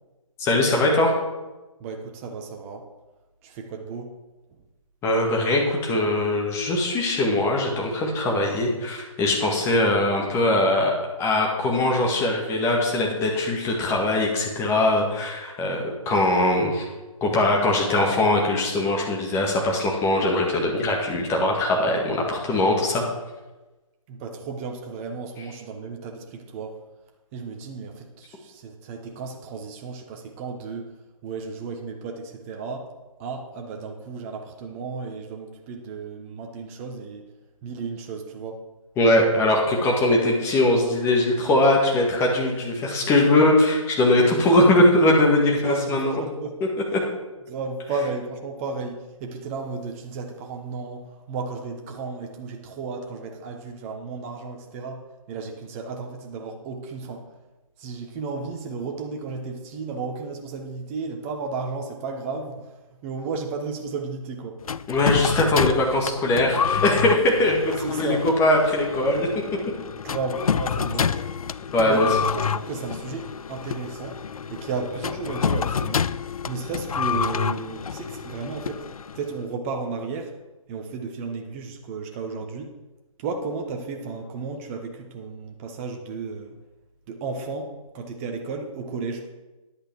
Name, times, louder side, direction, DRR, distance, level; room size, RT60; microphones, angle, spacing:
voice 1, 0.4-1.1 5.0-16.9 17.2-23.0 39.0-46.2 46.9-47.0 64.9-69.3 71.7-72.1, left 1 dB, 15° left, -1 dB, 1.8 m, -21 dB
voice 2, 1.8-2.9 3.4-4.1 24.1-26.8 27.3-30.9 31.2-32.9 33.2-37.2 37.6-38.6 45.5-46.6 47.5-57.2 57.8-62.7 63.0-64.6 67.8-68.2 70.0-71.2 71.9-74.2 74.5-76.0 76.5-78.8 79.1-80.3 80.7-82.7 83.2-86.5 87.1-89.3, right 4 dB, 25° right, 3 dB, 1.2 m, -33 dB
sound 1, 64.7-79.4, left 7 dB, 80° left, 0.4 m, -28 dB
10.5 x 8.2 x 4.6 m, 1.1 s
figure-of-eight pair, 145°, 18 cm